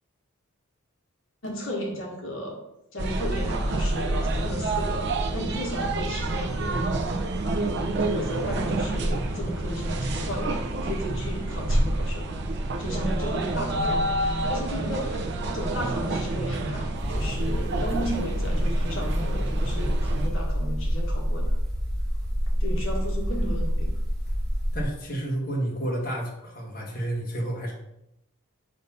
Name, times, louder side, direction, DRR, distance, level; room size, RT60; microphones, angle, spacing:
voice 1, 1.4-2.5 2.9-6.7 8.1-12.3 12.8-15.2 15.5-21.4 22.6-23.9, equal, 60° left, -1 dB, 1.5 m, -34 dB
sound 1, 3.0-20.3, right 2 dB, 50° right, 0.6 m, -28 dB
sound 2, 16.9-24.8, equal, 5° left, 1.2 m, -27 dB
voice 2, 24.7-27.7, right 1 dB, 40° left, -2 dB, 1.4 m, -30 dB
6.6 x 2.8 x 5.5 m, 0.85 s
head